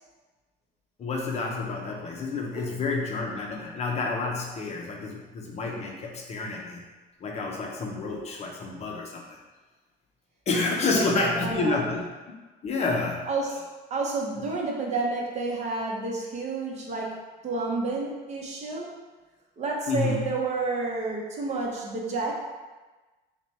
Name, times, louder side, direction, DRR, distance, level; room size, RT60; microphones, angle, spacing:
voice 1, 1.0-6.8 7.2-9.4 10.5-12.1 12.6-13.3 19.9-20.3, left 3 dB, 35° left, 0 dB, 0.6 m, -29 dB
voice 2, 10.8-11.9 13.3-13.6 13.9-18.9 19.6-22.4, right 3 dB, 40° right, -2 dB, 0.8 m, -30 dB
5.5 x 2.2 x 3.2 m, 1.2 s
cardioid pair, 155°, 18 cm